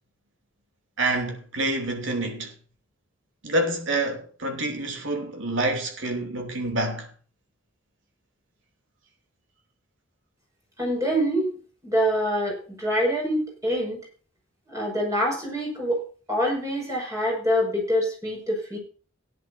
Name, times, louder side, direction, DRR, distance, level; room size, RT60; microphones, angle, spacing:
voice 1, 1.0-2.5 3.4-7.1, right 2 dB, 75° right, 2.8 m, -27 dB
voice 2, 10.8-11.5 11.8-14.1 14.7-16.0 16.3-18.8, equal, 15° right, 5.7 m, -25 dB
17.5 x 10.5 x 2.7 m
head